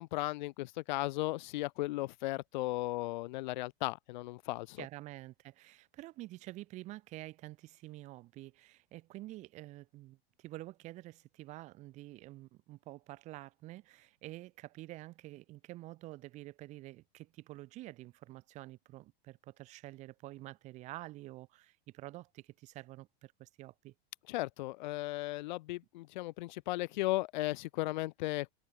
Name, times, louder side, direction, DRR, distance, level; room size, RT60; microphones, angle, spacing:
voice 1, 0.0-4.8 24.3-28.5, left 19 dB, 50° left, 0.7 m, -36 dB
voice 2, 4.8-23.9, right 18 dB, 25° right, 1.2 m, -48 dB
supercardioid pair, 175°, 31 cm